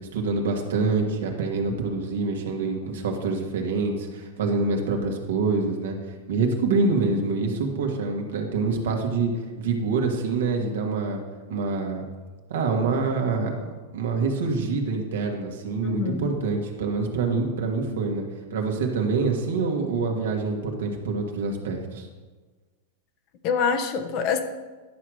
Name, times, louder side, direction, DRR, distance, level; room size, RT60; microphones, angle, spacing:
voice 1, 0.1-6.0 6.3-9.3 9.6-11.2 11.5-12.0 12.5-13.7 13.9-18.3 18.5-22.1, right 4 dB, 80° right, 2 dB, 1.8 m, -26 dB
voice 2, 15.8-16.3 23.4-24.4, left 6 dB, 50° left, 7 dB, 1.1 m, -25 dB
11.5 x 6.1 x 4.9 m, 1.3 s
hypercardioid pair, 110°, 0 cm